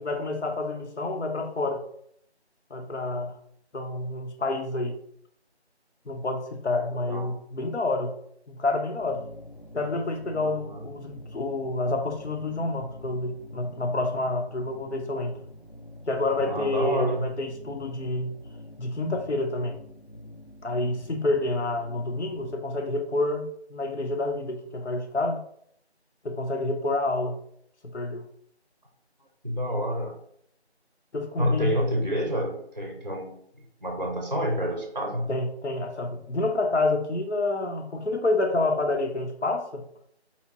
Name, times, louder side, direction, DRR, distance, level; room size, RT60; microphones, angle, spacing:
voice 1, 0.0-1.8 2.7-3.3 3.7-5.0 6.1-8.1 8.5-9.2 9.7-15.4 16.1-18.3 18.8-19.8 20.6-23.4 23.7-25.4 26.2-27.4 27.9-28.2 31.1-31.8 35.3-39.8, left 2 dB, 75° left, 5 dB, 0.8 m, -28 dB
sound 1, 9.0-22.5, left 1 dB, 45° left, 0.5 m, -46 dB
voice 2, 10.4-10.8 16.4-17.3 29.4-30.1 31.4-33.3 33.8-35.3, equal, 40° right, 2 dB, 0.5 m, -28 dB
4.3 x 3.5 x 2.7 m, 0.68 s
figure-of-eight pair, 175°, 34 cm